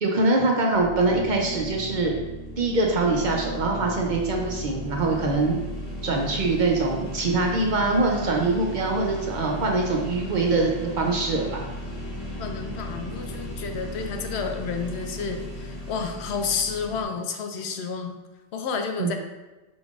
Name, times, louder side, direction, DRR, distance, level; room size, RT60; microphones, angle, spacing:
voice 1, 0.0-2.1 2.6-5.6 6.0-11.7 19.0-19.2, right 3 dB, 55° right, 0 dB, 0.6 m, -23 dB
sound 1, 0.7-17.0, left 1 dB, 40° left, 1.0 m, -36 dB
voice 2, 12.4-18.1 18.5-19.2, left 5 dB, 85° left, 5 dB, 0.8 m, -30 dB
4.9 x 3.6 x 2.4 m, 1.1 s
omnidirectional pair, 1.1 m